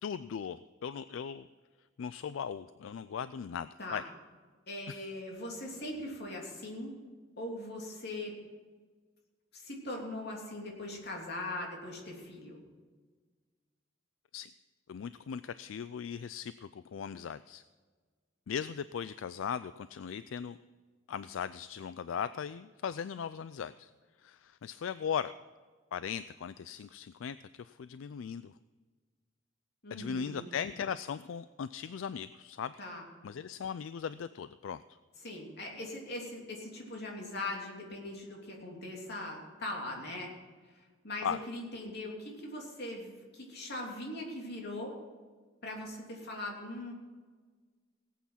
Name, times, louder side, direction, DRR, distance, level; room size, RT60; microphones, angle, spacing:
voice 1, 0.0-1.5 2.0-4.0 4.9-5.1 14.3-14.5 14.9-17.6 18.5-20.6 21.1-23.9 24.2-25.3 25.9-28.5 29.9-32.7 33.2-34.8 41.2-41.4, left 7 dB, 80° left, 14 dB, 0.4 m, -38 dB
voice 2, 4.7-6.9 7.4-8.4 9.5-12.6 29.8-30.5 32.8-33.1 35.2-40.3 41.0-44.9 45.6-46.9, left 1 dB, 55° left, 0 dB, 3.2 m, -40 dB
18.0 x 8.6 x 5.8 m, 1.5 s
head